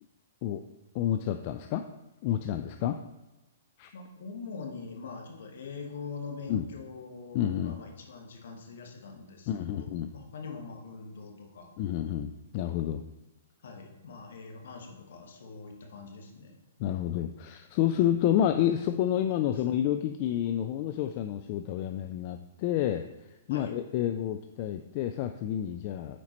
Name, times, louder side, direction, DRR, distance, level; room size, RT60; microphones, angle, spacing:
voice 1, 0.9-1.8 2.2-3.0 3.8-3.9 6.5-6.7 7.3-7.8 9.5-10.1 11.8-13.0 16.8-23.1 23.5-26.2, left 11 dB, 45° left, 7 dB, 0.3 m, -29 dB
voice 2, 3.9-11.7 13.6-16.6 19.5-19.6 23.5-23.7, left 4 dB, 65° left, 2 dB, 1.3 m, -43 dB
9.3 x 4.3 x 3.0 m, 1.0 s
hypercardioid pair, 120°, 0 cm